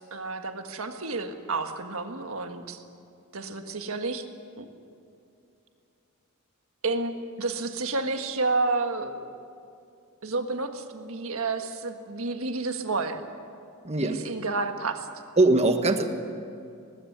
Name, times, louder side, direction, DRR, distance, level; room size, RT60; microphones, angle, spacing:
voice 1, 0.0-2.8 3.3-4.2 4.6-4.7 6.8-9.2 10.2-13.2 14.0-15.1, right 3 dB, 70° right, 6 dB, 1.6 m, -30 dB
voice 2, 13.8-14.2 15.4-16.1, right 2 dB, 30° right, 7 dB, 1.4 m, -21 dB
19.5 x 15.5 x 9.5 m, 2.5 s
head